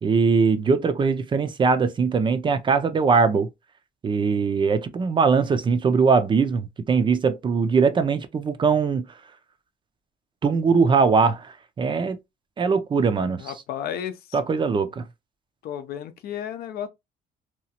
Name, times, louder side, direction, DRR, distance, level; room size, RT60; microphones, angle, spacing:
voice 1, 0.0-3.5 4.0-9.0 10.4-12.2 12.6-13.5 14.3-15.0, right 5 dB, 30° right, 0.4 m, -21 dB
voice 2, 13.4-14.2 15.6-16.9, left 9 dB, 65° left, 0.5 m, -32 dB
2.9 x 2.3 x 2.8 m
cardioid pair, 110°, 17 cm